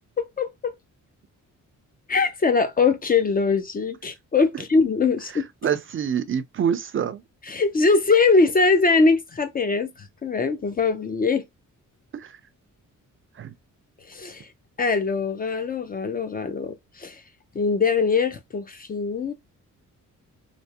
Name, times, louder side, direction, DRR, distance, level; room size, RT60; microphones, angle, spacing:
voice 1, 0.2-0.7 2.1-5.5 7.4-11.4 14.1-14.5 14.8-17.2 17.5-19.3, left 4 dB, 30° left, 0.4 m, -22 dB
voice 2, 5.3-7.2 12.1-12.4 13.4-13.5, right 8 dB, 40° right, 0.4 m, -26 dB
3.3 x 2.7 x 2.8 m
wide cardioid pair, 160°, 32 cm